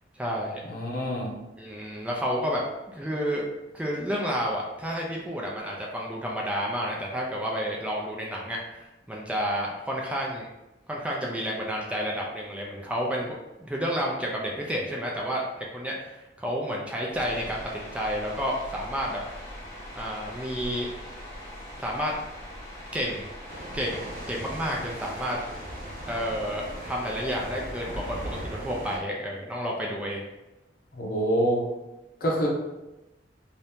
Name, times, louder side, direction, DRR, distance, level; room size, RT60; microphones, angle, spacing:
voice 1, 0.2-0.6 1.6-3.5 3.7-10.5 10.9-13.3 13.6-19.2 20.0-20.9 21.8-22.2 22.9-23.3 23.7-25.4 26.0-30.3, equal, 5° right, -2 dB, 0.4 m, -30 dB
voice 2, 0.7-1.3 30.9-31.6 32.2-32.5, right 1 dB, 55° left, -3 dB, 0.8 m, -26 dB
sound 1, 17.1-28.4, equal, 20° left, 0.8 m, -42 dB
sound 2, 23.5-29.0, right 1 dB, 50° right, 0.9 m, -39 dB
2.8 x 2.7 x 3.4 m, 1.0 s
head